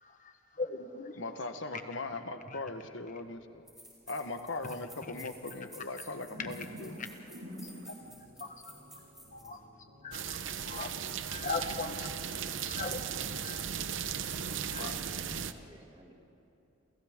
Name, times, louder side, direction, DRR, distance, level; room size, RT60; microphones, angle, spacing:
voice 1, 0.0-1.2 1.7-1.8 2.5-2.6 4.5-4.7 5.1-5.2 7.6-7.9 8.4-8.7 9.3-9.6 10.0-10.4 10.6-10.9 11.2-12.1 12.7-13.0 13.4-13.6 14.7-14.8, left 4 dB, 40° left, 6 dB, 1.3 m, -39 dB
voice 2, 1.2-3.7 4.1-6.9 14.7-15.0, left 2 dB, 70° left, 7 dB, 1.2 m, -39 dB
sound 1, 3.1-3.2 3.7-9.5, equal, ahead, 4.7 m, -53 dB
sound 2, 6.3-13.3, equal, 90° right, 4.0 m, -51 dB
sound 3, 10.1-15.5, right 7 dB, 70° right, 0.8 m, -37 dB
voice 3, 14.3-16.1, right 1 dB, 20° right, -1 dB, 2.3 m, -56 dB
29.0 x 28.5 x 3.7 m, 2.7 s
head